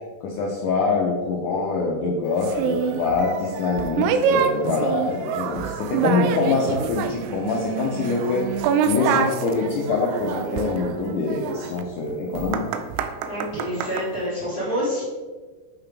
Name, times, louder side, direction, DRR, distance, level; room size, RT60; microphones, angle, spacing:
voice 1, 0.2-12.7, left 4 dB, 80° left, -2 dB, 1.8 m, -25 dB
sound 1, 2.4-14.1, right 7 dB, 85° right, 2.6 m, -26 dB
voice 2, 13.2-15.0, equal, 30° left, -9 dB, 2.1 m, -27 dB
8.1 x 5.8 x 3.4 m, 1.4 s
omnidirectional pair, 4.7 m